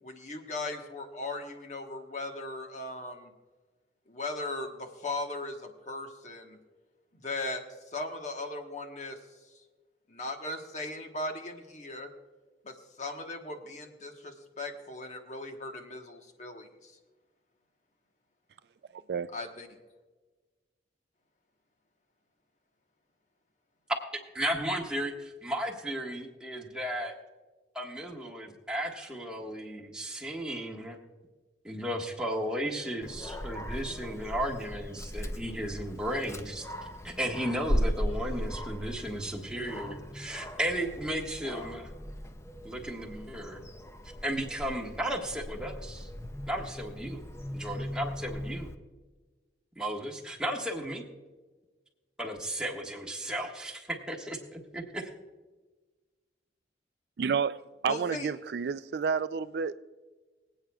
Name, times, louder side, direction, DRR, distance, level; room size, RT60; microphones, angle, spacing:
voice 1, 0.0-3.3 4.1-6.6 7.1-7.6 7.9-9.2 10.1-12.1 12.6-16.9 19.3-19.7 57.9-58.3, left 2 dB, 40° left, 1.2 m, -38 dB
voice 2, 24.3-27.1 27.7-31.0 31.6-36.7 37.0-41.9 42.6-43.6 44.2-46.1 46.5-47.2 47.5-48.7 49.8-51.0 52.2-55.1, right 1 dB, 5° right, 1.5 m, -34 dB
Dog, 33.0-48.7, equal, 15° left, 0.5 m, -37 dB
voice 3, 57.2-57.6 57.8-59.8, right 6 dB, 65° right, 0.3 m, -30 dB
24.0 x 8.8 x 2.3 m
head